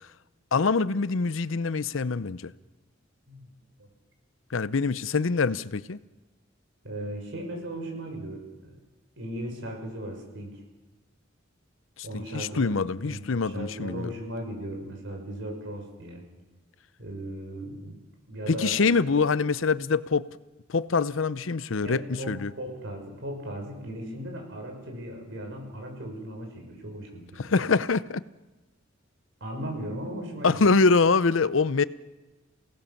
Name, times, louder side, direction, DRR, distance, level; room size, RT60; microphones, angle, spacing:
voice 1, 0.5-2.5 4.5-6.0 12.0-14.1 18.5-20.3 20.7-22.5 27.4-28.2 30.4-31.8, left 4 dB, 75° left, 0.7 m, -24 dB
voice 2, 6.8-8.8 9.2-10.6 12.0-16.2 17.0-18.0 18.3-18.8 21.8-27.5 29.4-30.7, right 1 dB, 65° right, 6.4 m, -37 dB
28.0 x 18.0 x 7.2 m
head